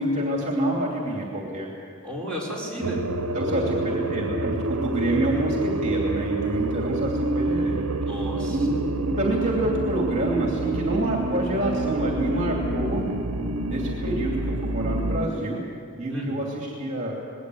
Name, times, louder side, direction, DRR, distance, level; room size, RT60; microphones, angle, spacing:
voice 1, 0.0-1.7 3.3-7.8 8.5-8.8 9.2-13.0 13.7-15.6 16.0-17.1, right 1 dB, 30° right, -1 dB, 2.8 m, -27 dB
voice 2, 2.0-3.0 3.3-3.8 8.0-8.7 16.1-16.3, equal, 5° left, -5 dB, 4.9 m, -32 dB
sound 1, 2.8-15.3, right 2 dB, 80° right, 0.9 m, -28 dB
20.0 x 18.0 x 7.9 m, 2.4 s
head